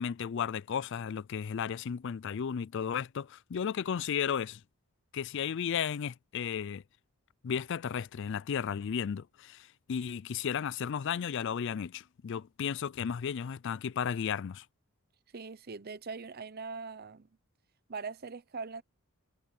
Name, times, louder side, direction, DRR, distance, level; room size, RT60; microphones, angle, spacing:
voice 1, 0.0-4.6 5.1-6.8 7.4-14.6, left 7 dB, 55° left, 0.4 m, -34 dB
voice 2, 15.3-17.3 17.9-18.8, right 4 dB, 45° right, 0.7 m, -41 dB
head